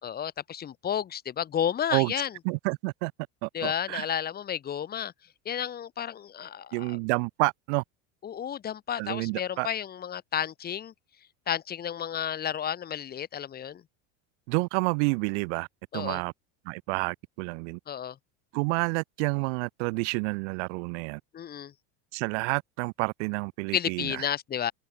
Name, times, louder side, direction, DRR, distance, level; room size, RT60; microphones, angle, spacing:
voice 1, 0.0-2.3 3.5-5.1 5.5-7.0 8.2-10.9 11.5-13.8 15.9-16.2 17.9-18.2 21.3-21.7 23.7-24.7, left 9 dB, 25° left, 2.2 m, -32 dB
voice 2, 2.4-3.1 3.4-4.1 6.7-7.8 9.0-9.7 14.5-15.7 15.9-16.3 16.6-17.8 18.5-21.2 22.1-24.2, right 31 dB, 65° right, 1.2 m, -29 dB
open air
supercardioid pair, 150°, 38 cm